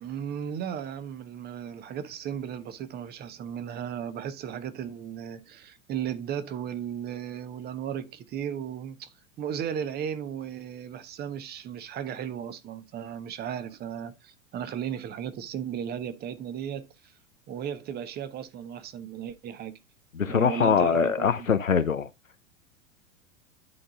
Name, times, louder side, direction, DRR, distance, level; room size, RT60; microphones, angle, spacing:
voice 1, 0.0-17.1 17.5-19.7 20.3-21.5, right 9 dB, 25° right, 0.9 m, -35 dB
voice 2, 20.1-22.1, left 6 dB, 90° left, 0.7 m, -23 dB
11.0 x 3.8 x 3.7 m
figure-of-eight pair, 95°, 38 cm